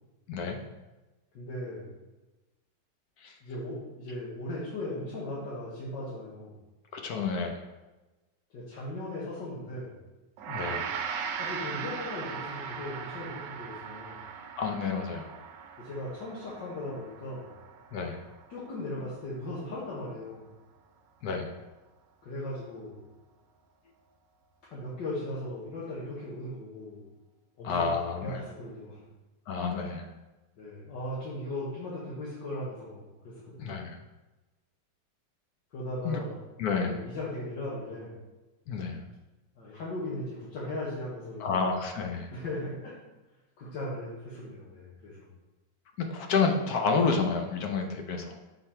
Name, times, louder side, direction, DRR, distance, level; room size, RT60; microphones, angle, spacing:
voice 1, 0.3-0.6 3.2-3.4 6.9-7.6 10.5-10.9 14.6-15.4 17.9-18.2 21.2-21.6 27.6-28.4 29.5-30.1 33.6-34.0 36.0-36.2 36.6-37.0 38.7-39.0 41.4-42.3 46.0-48.4, left 5 dB, 65° left, 4 dB, 1.1 m, -30 dB
voice 2, 1.3-1.9 3.4-6.6 8.5-9.9 11.4-14.2 15.8-17.5 18.5-20.5 22.2-23.0 24.7-27.0 27.6-29.0 30.6-33.8 35.7-36.4 36.8-38.1 39.6-41.6 42.3-42.9 43.6-45.3, left 1 dB, 90° left, -7 dB, 1.9 m, -38 dB
Gong, 10.4-19.8, right 7 dB, 80° right, 1.3 m, -39 dB
6.7 x 4.0 x 4.2 m, 1.1 s
omnidirectional pair, 1.9 m